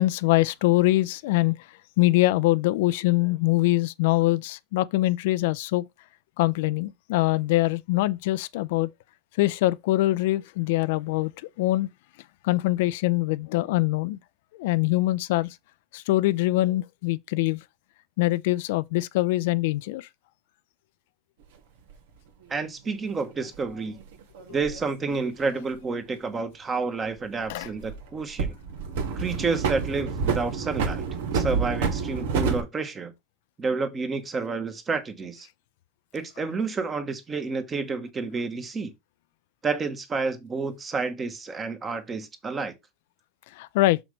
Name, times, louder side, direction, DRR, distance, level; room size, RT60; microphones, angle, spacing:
voice 1, 0.0-1.6 2.0-5.8 6.4-8.9 9.4-11.3 11.6-11.9 12.4-14.2 14.5-15.6 15.9-17.6 18.2-20.1 27.5-27.7 43.6-44.0, left 18 dB, 70° left, 0.4 m, -23 dB
sound 1, 21.9-22.0 23.5-24.8 27.1-28.0 28.4-32.6, right 5 dB, 85° right, 2.0 m, -28 dB
voice 2, 22.5-24.0 24.5-28.5 29.2-31.0 31.3-33.1 33.6-35.5 36.1-38.9 39.6-42.7, right 4 dB, 20° right, 1.2 m, -29 dB
6.4 x 5.9 x 3.2 m
supercardioid pair, 160°, 0 cm